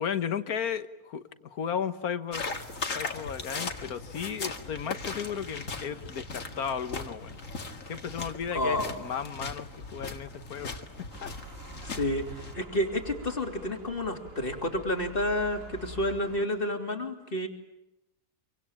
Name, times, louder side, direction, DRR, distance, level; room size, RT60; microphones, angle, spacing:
voice 1, 0.0-2.4 2.9-7.4 7.9-10.7 11.2-11.3, left 7 dB, 90° left, 11 dB, 1.8 m, -34 dB
sound 1, 2.3-12.5, left 3 dB, 60° left, 2.4 m, -38 dB
voice 2, 8.5-9.0 11.8-17.5, left 1 dB, 40° left, 4 dB, 3.2 m, -30 dB
sound 2, 11.1-16.4, right 2 dB, 65° right, 2.4 m, -46 dB
27.0 x 25.0 x 8.8 m, 0.88 s
omnidirectional pair, 1.5 m